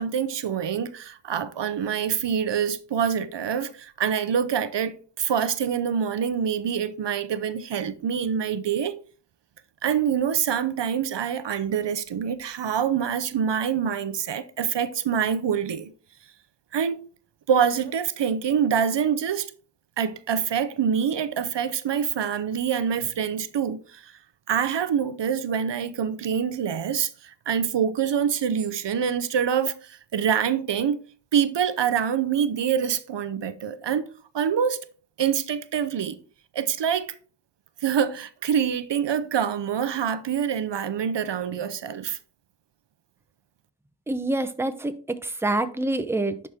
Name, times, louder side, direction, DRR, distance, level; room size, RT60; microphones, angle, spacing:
voice 1, 0.0-9.0 9.8-15.9 16.7-17.1 17.5-19.5 20.0-24.1 24.5-31.0 31.3-34.1 34.3-34.8 35.2-36.2 36.5-37.1 37.8-42.2, right 8 dB, 70° right, 0.7 m, -25 dB
voice 2, 44.1-46.4, right 2 dB, 5° right, 0.7 m, -26 dB
11.0 x 4.3 x 3.5 m
wide cardioid pair, 70°, 43 cm